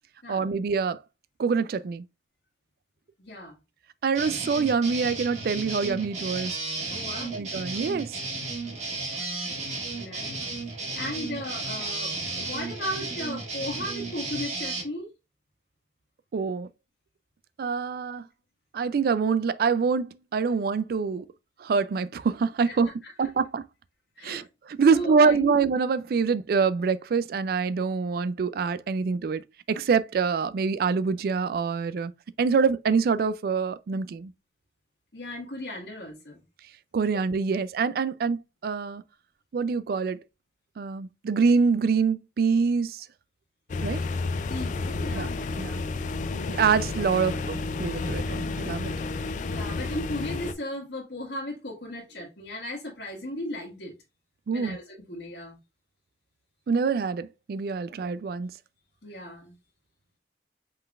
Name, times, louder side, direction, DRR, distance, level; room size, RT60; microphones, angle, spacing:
voice 1, 0.3-1.0 1.4-2.0 4.0-6.6 7.3-8.1 16.3-16.7 17.6-18.3 18.7-21.3 21.6-22.9 23.2-23.6 24.2-32.1 32.4-34.3 36.9-39.0 39.5-40.2 40.8-43.1 43.8-44.0 45.1-45.3 45.6-45.8 46.5-48.9 54.5-54.8 56.7-58.5, right 5 dB, 55° right, 0.3 m, -25 dB
voice 2, 3.2-3.6 6.9-7.5 9.9-10.4 10.9-15.1 22.7-22.8 23.0-23.1 24.2-24.5 24.9-25.5 35.1-36.4 44.5-45.9 49.5-53.9 54.5-55.6 57.8-57.9 59.0-59.5, left 1 dB, 75° left, 1.6 m, -36 dB
sound 1, 4.1-14.8, right 3 dB, 40° right, 1.4 m, -34 dB
sound 2, 43.7-50.5, left 3 dB, 45° left, 0.3 m, -31 dB
5.4 x 3.8 x 2.4 m
head